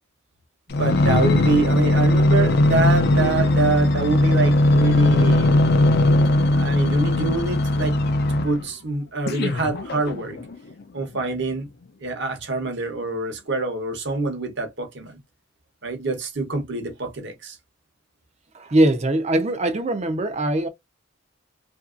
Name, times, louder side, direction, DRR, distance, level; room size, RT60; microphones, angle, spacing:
sound 1, 0.7-8.7 9.3-10.5 11.2-11.3, left 1 dB, 50° left, 0.5 m, -19 dB
voice 1, 0.8-5.5 6.5-8.0 8.3-10.4 10.9-11.7 12.0-15.2 15.8-17.6, right 3 dB, 55° right, 0.9 m, -25 dB
voice 2, 18.5-20.7, right 1 dB, 35° right, 0.5 m, -21 dB
2.8 x 2.6 x 2.4 m
head